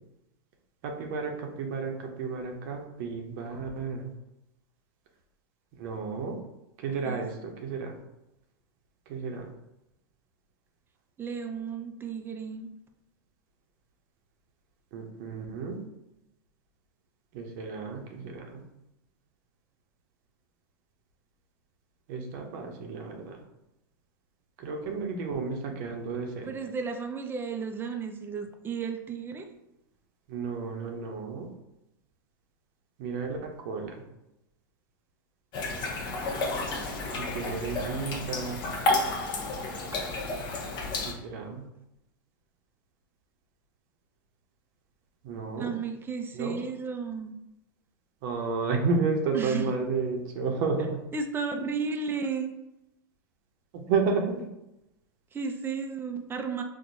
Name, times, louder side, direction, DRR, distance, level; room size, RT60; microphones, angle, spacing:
voice 1, 0.8-4.1 5.8-6.4 6.8-8.0 9.1-9.5 14.9-15.8 17.3-18.6 22.1-23.4 24.6-26.5 30.3-31.5 33.0-34.0 37.2-38.6 41.1-41.7 45.2-45.8 46.3-46.6 48.2-51.0 53.7-54.5, right 4 dB, 55° right, 3 dB, 0.7 m, -32 dB
voice 2, 11.2-12.7 26.4-29.5 45.6-47.3 49.3-49.7 51.1-52.5 55.3-56.6, right 5 dB, 20° right, 5 dB, 0.4 m, -33 dB
sound 1, 35.5-41.1, left 2 dB, 40° left, 0.7 m, -31 dB
4.4 x 2.2 x 2.6 m, 0.90 s
hypercardioid pair, 105°, 12 cm